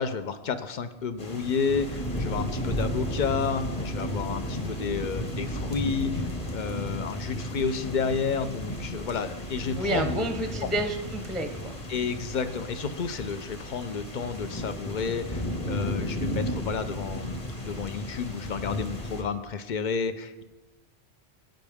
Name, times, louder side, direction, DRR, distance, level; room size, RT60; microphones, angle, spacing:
voice 1, 0.0-10.3 10.6-10.7 11.9-20.4, left 5 dB, 50° left, 11 dB, 0.7 m, -31 dB
sound 1, 1.2-19.2, equal, 35° left, 1.5 m, -34 dB
voice 2, 9.7-11.8, right 2 dB, ahead, 5 dB, 0.7 m, -30 dB
13.0 x 9.1 x 3.5 m, 1.1 s
omnidirectional pair, 1.1 m